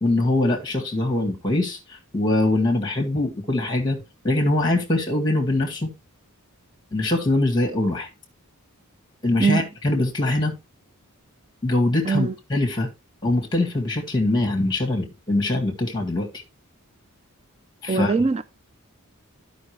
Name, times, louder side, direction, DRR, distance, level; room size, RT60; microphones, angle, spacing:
voice 1, 0.0-4.0 4.2-5.9 6.9-8.1 9.2-10.6 11.6-12.9 13.2-16.4 17.8-18.1, left 2 dB, 20° left, 1.8 m, -23 dB
voice 2, 17.9-18.4, right 4 dB, 30° right, 0.4 m, -21 dB
13.5 x 5.1 x 3.2 m
head